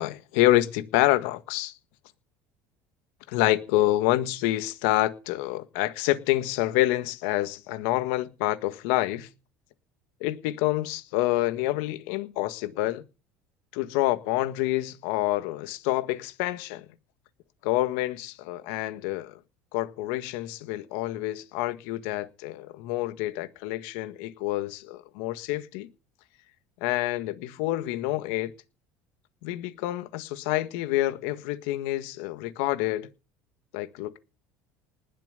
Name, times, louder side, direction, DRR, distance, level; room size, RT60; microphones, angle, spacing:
voice 1, 0.0-1.7 3.3-9.3 10.2-13.0 13.7-16.8 17.6-19.4 19.7-25.9 26.8-28.5 29.4-33.1 33.7-34.2, left 16 dB, 80° left, 1.7 m, -27 dB
20.0 x 7.5 x 6.6 m
supercardioid pair, 125°, 6 cm